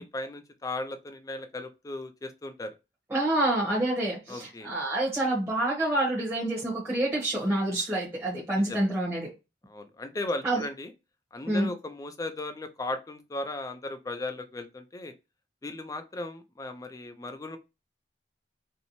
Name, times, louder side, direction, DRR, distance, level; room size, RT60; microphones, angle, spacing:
voice 1, 0.0-2.7 4.3-4.7 8.7-8.9 9.7-10.9 11.3-15.1 15.6-17.6, left 2 dB, 20° left, 8 dB, 0.3 m, -36 dB
voice 2, 3.1-9.3 10.4-10.6 11.5-11.7, right 1 dB, 15° right, -5 dB, 0.8 m, -27 dB
2.6 x 2.0 x 2.9 m, 0.26 s
head